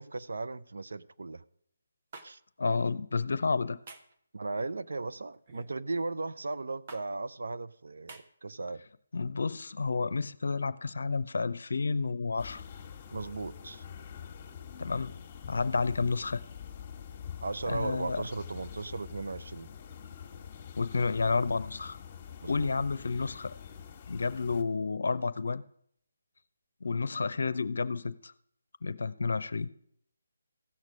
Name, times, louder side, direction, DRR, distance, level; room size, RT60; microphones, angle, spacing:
voice 1, 0.0-1.4 2.2-2.4 4.3-8.8 13.1-13.8 17.4-19.7 22.4-22.7, right 3 dB, 75° right, 0.6 m, -36 dB
sound 1, 2.1-2.3 3.9-4.2 5.5-5.8 6.9-7.0 8.1-8.2, right 3 dB, 40° right, 1.1 m, -47 dB
voice 2, 2.6-3.8 9.1-12.6 14.8-15.2 15.5-16.4 17.7-18.2 20.8-22.0 22.5-23.5 24.1-25.6 26.8-28.3 28.8-29.7, left 4 dB, 70° left, 0.6 m, -30 dB
sound 2, 12.4-24.6, left 8 dB, 30° left, 1.4 m, -46 dB
15.5 x 6.6 x 6.2 m
figure-of-eight pair, 155°, 0 cm